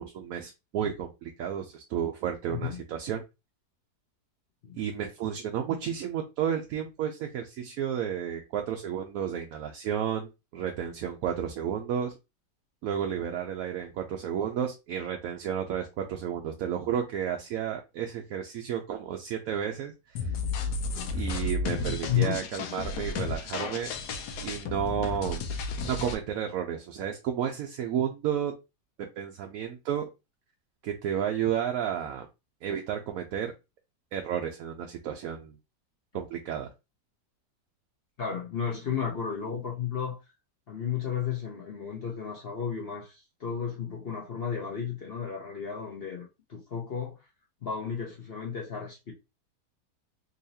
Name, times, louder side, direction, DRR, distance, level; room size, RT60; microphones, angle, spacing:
voice 1, 0.0-3.2 4.7-12.2 12.8-20.3 21.1-23.9 24.4-25.5 25.8-28.5 29.2-30.0 30.8-32.3 32.6-33.5 34.1-35.5 36.1-36.7, right 9 dB, 70° right, 0.9 m, -32 dB
sound 1, 20.2-26.2, left 3 dB, 75° left, 1.2 m, -33 dB
voice 2, 22.1-22.4 38.2-40.2 40.7-47.2 47.6-49.1, left 8 dB, 50° left, 0.7 m, -33 dB
3.9 x 2.8 x 2.7 m
omnidirectional pair, 1.8 m